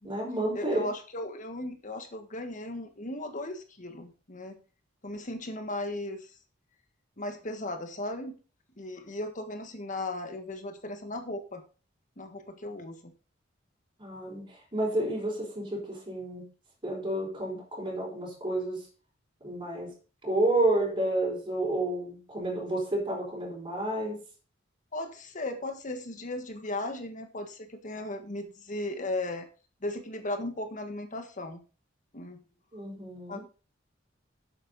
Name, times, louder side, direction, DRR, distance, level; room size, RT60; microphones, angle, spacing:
voice 1, 0.0-0.9 14.0-14.4 14.7-16.5 16.8-18.8 19.4-19.9 20.2-24.2 32.7-33.4, right 1 dB, 25° right, -4 dB, 4.9 m, -30 dB
voice 2, 0.5-4.6 5.0-6.3 7.2-8.4 8.8-11.6 12.2-13.1 24.9-29.5 29.8-31.6 32.1-32.4 33.3-33.4, left 1 dB, 40° left, 7 dB, 1.5 m, -36 dB
11.0 x 8.3 x 4.1 m, 0.36 s
head